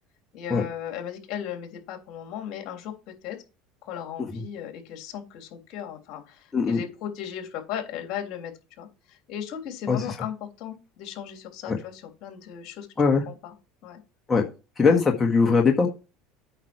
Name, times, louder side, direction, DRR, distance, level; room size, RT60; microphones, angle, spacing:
voice 1, 0.3-2.9 3.2-3.4 3.8-8.5 8.8-12.9 13.3-13.5 13.8-14.0 14.9-15.0, left 9 dB, 60° left, 3 dB, 3.1 m, -36 dB
voice 2, 14.8-15.9, left 5 dB, 20° left, 1 dB, 1.6 m, -21 dB
8.9 x 6.2 x 4.5 m, 0.31 s
supercardioid pair, 105°, 0 cm